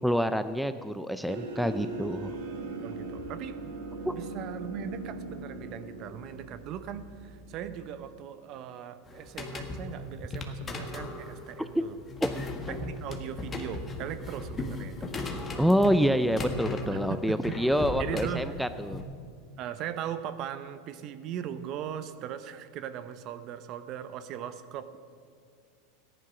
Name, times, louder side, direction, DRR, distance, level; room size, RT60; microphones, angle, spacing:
voice 1, 0.0-2.3 4.1-4.2 11.7-11.8 12.2-12.3 15.6-19.0, equal, ahead, 11 dB, 0.5 m, -27 dB
sound 1, 1.3-7.9, right 2 dB, 75° right, 1.7 m, -40 dB
voice 2, 2.8-3.8 4.1-12.0 12.7-15.1 16.9-17.6 18.0-18.5 19.6-25.0, right 9 dB, 50° right, 12 dB, 0.8 m, -39 dB
sound 2, 9.1-19.0, left 2 dB, 20° left, 1.5 m, -37 dB
14.0 x 10.5 x 5.8 m, 2.2 s
hypercardioid pair, 110°, 0 cm